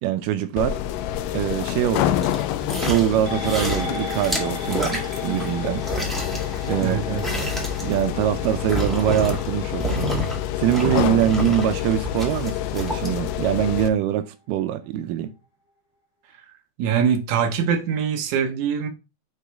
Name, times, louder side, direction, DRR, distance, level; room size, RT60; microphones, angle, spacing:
voice 1, 0.0-0.8 1.3-2.1 2.6-5.9 6.7-7.2 7.8-10.1 10.6-15.3, right 12 dB, 90° right, 1.9 m, -23 dB
sound 1, 0.6-13.9, left 12 dB, 85° left, 1.9 m, -28 dB
sound 2, 2.2-3.2 3.4-5.5 5.8-9.5 9.8-10.4 10.7-13.1 13.5-13.6, equal, ahead, 0.3 m, -29 dB
sound 3, 3.3-11.9 12.3-12.4, left 1 dB, 30° left, 2.2 m, -38 dB
voice 2, 6.8-7.2 16.8-18.9, right 7 dB, 65° right, 2.1 m, -23 dB
8.3 x 4.2 x 3.4 m
omnidirectional pair, 4.3 m